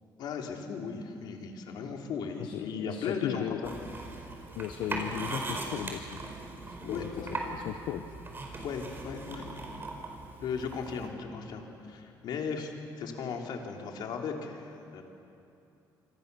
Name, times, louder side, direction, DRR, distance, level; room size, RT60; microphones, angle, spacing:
voice 1, 0.2-3.7 6.8-7.6 7.9-8.0 8.6-9.6 10.4-15.1, left 5 dB, 75° left, 2 dB, 3.4 m, -37 dB
voice 2, 2.4-3.6 4.5-6.2 6.7-8.0, left 11 dB, 90° left, 8 dB, 0.9 m, -37 dB
sound 1, 3.6-11.1, right 2 dB, 30° right, 4.6 m, -39 dB
26.5 x 26.0 x 7.0 m, 2.7 s
cardioid pair, 115°, 8 cm